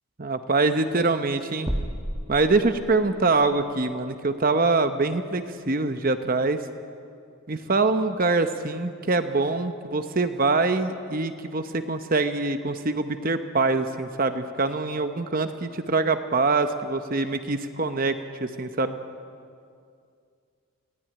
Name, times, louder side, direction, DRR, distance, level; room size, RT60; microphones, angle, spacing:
voice 1, 0.2-1.7 2.3-6.6 7.5-19.0, right 3 dB, 40° right, 9 dB, 0.9 m, -24 dB
sound 1, 1.7-3.3, equal, 20° right, 1.5 m, -32 dB
22.5 x 16.5 x 9.9 m, 2.3 s
head